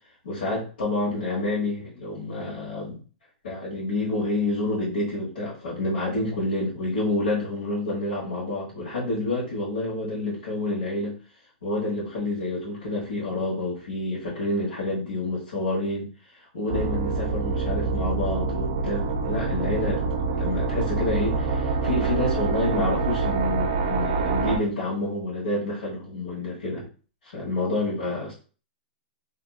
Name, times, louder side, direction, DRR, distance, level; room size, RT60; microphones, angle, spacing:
voice 1, 0.2-3.0 3.4-11.1 11.6-16.1 16.5-20.0 20.3-26.9 27.3-28.3, left 2 dB, 90° left, -7 dB, 1.2 m, -28 dB
sound 1, 16.7-24.6, right 4 dB, 30° right, 0.3 m, -26 dB
2.6 x 2.4 x 2.4 m, 0.38 s
hypercardioid pair, 180°, 5 cm